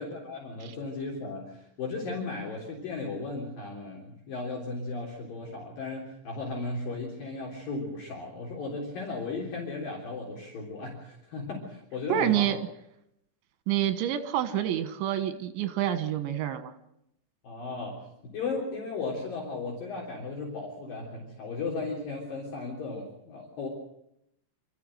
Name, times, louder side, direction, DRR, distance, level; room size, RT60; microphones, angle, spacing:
voice 1, 0.0-12.6 17.4-23.7, left 3 dB, 55° left, -2 dB, 5.1 m, -36 dB
voice 2, 12.1-12.6 13.7-16.7, right 11 dB, 85° right, 10 dB, 3.7 m, -28 dB
26.5 x 14.5 x 7.8 m, 0.79 s
omnidirectional pair, 5.1 m